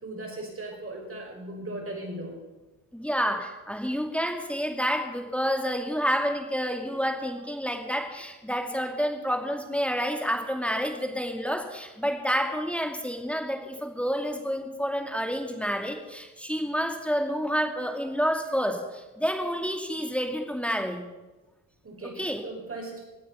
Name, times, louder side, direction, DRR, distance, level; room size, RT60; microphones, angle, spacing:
voice 1, 0.0-2.4 21.8-23.0, right 2 dB, 40° right, 1 dB, 5.6 m, -38 dB
voice 2, 2.9-21.0 22.2-22.4, equal, 5° left, 2 dB, 2.4 m, -29 dB
17.0 x 9.2 x 5.8 m, 1.1 s
supercardioid pair, 60°, 36 cm